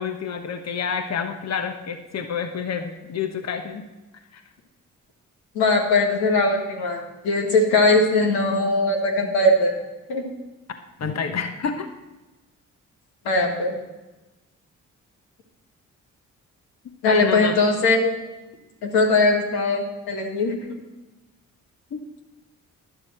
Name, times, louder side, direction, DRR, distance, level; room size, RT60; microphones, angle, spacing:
voice 1, 0.0-3.9 4.3-4.4 11.0-11.9 17.1-17.6 21.9-22.0, left 6 dB, 45° left, 7 dB, 1.1 m, -28 dB
voice 2, 5.5-9.7 10.1-10.2 13.2-13.7 17.0-18.1 18.8-20.5, left 2 dB, 85° left, 2 dB, 1.8 m, -20 dB
12.0 x 11.5 x 4.4 m, 1.1 s
hypercardioid pair, 45°, 36 cm